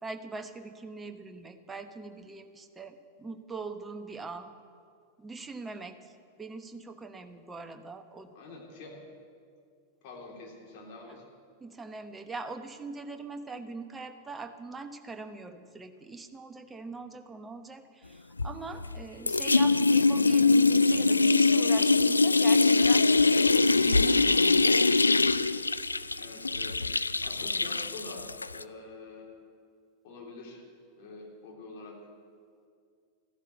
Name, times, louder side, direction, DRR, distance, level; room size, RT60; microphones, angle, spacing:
voice 1, 0.0-4.5 5.2-8.4 11.1-11.2 11.6-23.1 23.5-24.9, right 3 dB, 15° right, 8 dB, 1.0 m, -42 dB
voice 2, 8.3-9.0 10.0-11.2 26.2-29.3 30.0-30.6 31.0-32.0, left 3 dB, 45° left, -2 dB, 3.7 m, -46 dB
sound 1, 18.4-19.0 19.3-28.6, left 3 dB, 80° left, 0.3 m, -23 dB
14.0 x 11.5 x 8.0 m, 2.2 s
figure-of-eight pair, 90°, 0 cm